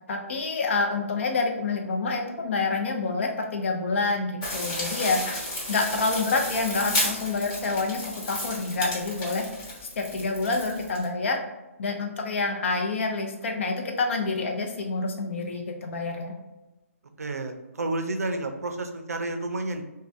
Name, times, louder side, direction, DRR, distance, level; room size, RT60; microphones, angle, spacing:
voice 1, 0.1-5.2 5.7-9.5 10.0-11.4 11.8-16.3, left 3 dB, 55° left, 2 dB, 0.6 m, -27 dB
sound 1, 4.4-11.0, left 1 dB, 35° left, 1.1 m, -32 dB
voice 2, 17.2-19.8, right 2 dB, 85° right, 5 dB, 0.4 m, -30 dB
3.2 x 2.2 x 2.5 m, 1.0 s
figure-of-eight pair, 140°, 8 cm